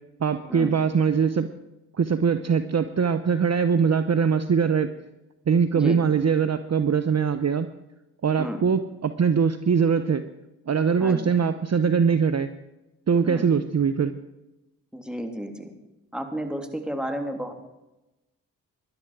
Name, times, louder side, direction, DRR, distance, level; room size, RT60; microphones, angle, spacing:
voice 1, 0.2-1.5 2.0-4.9 5.5-7.7 8.2-10.3 10.7-12.5 13.1-14.1, right 6 dB, 40° right, 11 dB, 0.9 m, -22 dB
voice 2, 11.0-11.3 13.2-13.5 14.9-15.7 16.1-17.5, right 1 dB, ahead, 4 dB, 3.1 m, -32 dB
18.0 x 11.5 x 4.9 m, 0.98 s
supercardioid pair, 45°, 42 cm